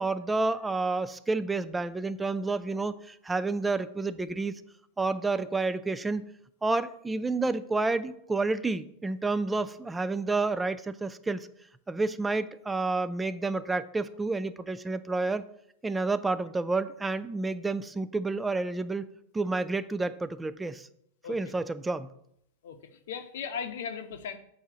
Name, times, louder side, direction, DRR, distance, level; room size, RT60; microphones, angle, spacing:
voice 1, 0.0-4.5 5.0-6.3 6.6-11.5 11.9-15.5 15.8-19.0 19.3-20.9 21.3-22.1, right 3 dB, 10° right, 13 dB, 0.3 m, -30 dB
voice 2, 22.6-24.4, left 7 dB, 75° left, 7 dB, 0.7 m, -38 dB
7.3 x 2.7 x 4.9 m, 0.73 s
hypercardioid pair, 125°, 0 cm